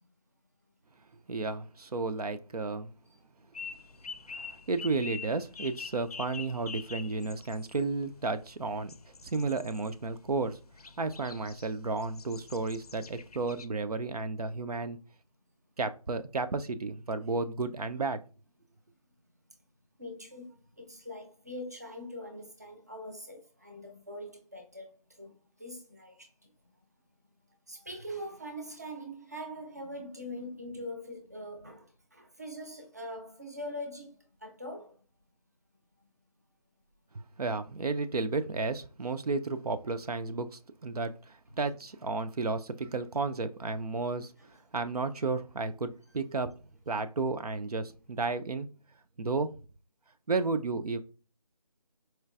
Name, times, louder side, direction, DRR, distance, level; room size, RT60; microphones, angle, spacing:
voice 1, 1.3-2.9 4.3-8.9 9.2-10.6 11.0-15.0 15.8-18.2 37.4-44.3 44.7-46.5 46.9-48.7 49.2-49.5 50.3-51.0, right 3 dB, 80° right, 0.5 m, -32 dB
sound 1, 3.5-13.7, left 5 dB, 75° left, 0.4 m, -46 dB
voice 2, 20.0-26.5 27.7-35.0, equal, 25° right, 0.5 m, -43 dB
4.4 x 2.4 x 2.4 m
figure-of-eight pair, 175°, 20 cm